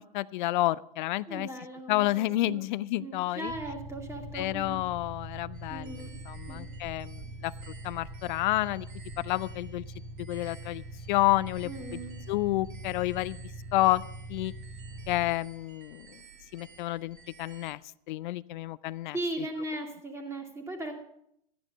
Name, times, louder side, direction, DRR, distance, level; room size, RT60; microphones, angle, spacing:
voice 1, 0.0-1.5 1.9-3.5 4.3-7.5 7.8-8.9 9.2-9.8 10.2-12.0 12.3-13.4 13.7-14.0 14.3-14.5 15.1-16.2 16.5-17.8 18.1-19.2, left 17 dB, 55° left, 18 dB, 0.5 m, -30 dB
voice 2, 1.3-2.6 3.0-4.8 5.7-6.2 6.5-6.7 11.6-12.2 19.1-20.9, right 2 dB, 10° right, 2 dB, 2.4 m, -38 dB
sound 1, 3.5-15.3, right 1 dB, 30° right, 2.7 m, -43 dB
sound 2, 5.5-17.7, right 5 dB, 60° right, 2.0 m, -54 dB
13.5 x 9.9 x 5.3 m, 0.74 s
hypercardioid pair, 115°, 29 cm